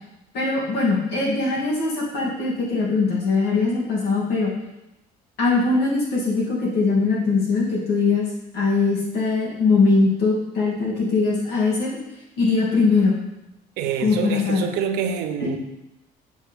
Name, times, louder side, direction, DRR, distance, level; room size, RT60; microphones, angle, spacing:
voice 1, 0.3-4.5 5.4-8.3 8.5-11.9 12.4-13.1 14.0-14.6 15.4-15.6, left 3 dB, 80° left, -5 dB, 2.8 m, -21 dB
voice 2, 13.8-15.6, right 7 dB, 85° right, 6 dB, 0.8 m, -26 dB
7.4 x 5.4 x 3.5 m, 0.90 s
cardioid pair, 110°, 17 cm